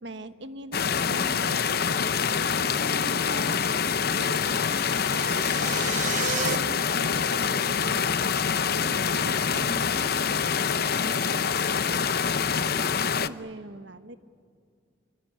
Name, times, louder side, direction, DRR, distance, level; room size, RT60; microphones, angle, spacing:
voice 1, 0.0-3.6 4.1-5.8 6.3-8.4 8.8-12.2 12.5-14.2, right 1 dB, 80° right, 10 dB, 1.4 m, -42 dB
sound 1, 0.7-13.3, left 6 dB, 55° left, 0.7 m, -26 dB
sound 2, 4.1-6.6, right 8 dB, 40° right, 0.7 m, -34 dB
25.0 x 24.0 x 9.9 m, 2.3 s
head